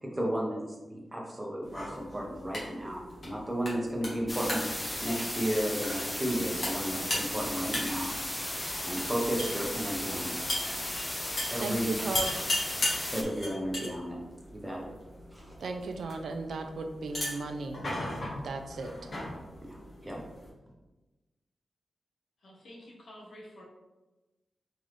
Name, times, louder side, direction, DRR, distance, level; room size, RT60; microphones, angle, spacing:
voice 1, 0.0-8.1 8.8-10.3 11.5-11.9 13.1-14.2 14.5-14.9 15.3-15.5 19.6-20.2, equal, 15° right, -2 dB, 0.9 m, -33 dB
sound 1, 1.6-20.5, left 1 dB, 50° left, 1.2 m, -38 dB
sound 2, 4.3-13.2, left 1 dB, 15° left, 0.5 m, -35 dB
voice 2, 11.6-12.4 15.6-17.8 18.4-18.9, right 3 dB, 85° right, 6 dB, 0.4 m, -35 dB
voice 3, 22.4-23.6, equal, 70° left, -2 dB, 1.0 m, -49 dB
4.0 x 3.7 x 3.1 m, 1.1 s
wide cardioid pair, 145°, 0 cm